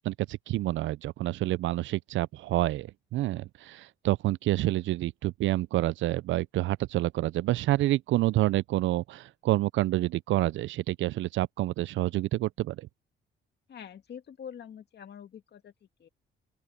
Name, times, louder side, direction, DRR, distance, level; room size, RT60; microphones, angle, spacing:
voice 1, 0.0-12.9, right 16 dB, 75° right, 0.4 m, -28 dB
voice 2, 13.7-15.7 16.0-16.1, left 8 dB, 55° left, 2.2 m, -45 dB
open air
cardioid pair, 90°, 20 cm